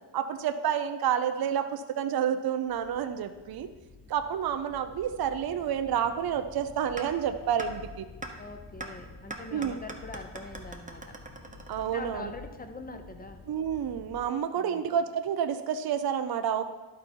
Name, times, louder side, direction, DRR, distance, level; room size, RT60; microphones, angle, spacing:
voice 1, 0.1-3.7 4.1-8.1 9.5-9.8 11.7-12.3 13.5-16.6, right 8 dB, 55° right, 8 dB, 0.6 m, -29 dB
sound 1, 2.6-14.2, left 3 dB, 70° left, 2.8 m, -50 dB
sound 2, 7.0-7.1 7.6-7.7 8.2-8.3 8.8-8.9 9.3-12.2, right 2 dB, 15° right, 0.9 m, -40 dB
voice 2, 8.4-11.1 11.8-13.4 14.5-14.8, left 3 dB, 20° left, 7 dB, 0.8 m, -43 dB
12.0 x 4.0 x 4.5 m, 1.2 s
cardioid pair, 85°, 44 cm